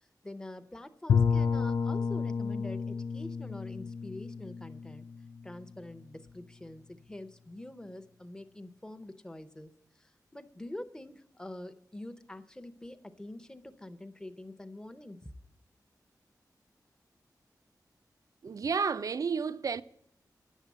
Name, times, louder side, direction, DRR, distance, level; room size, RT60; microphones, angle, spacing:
voice 1, 0.2-5.1 5.4-9.7 10.0-15.3, left 1 dB, 10° left, 0.6 m, -45 dB
Bowed string instrument, 1.1-5.9, left 6 dB, 85° left, 0.4 m, -31 dB
voice 2, 18.4-19.8, right 5 dB, 55° right, 0.4 m, -31 dB
10.5 x 7.3 x 8.2 m
wide cardioid pair, 130°, 7 cm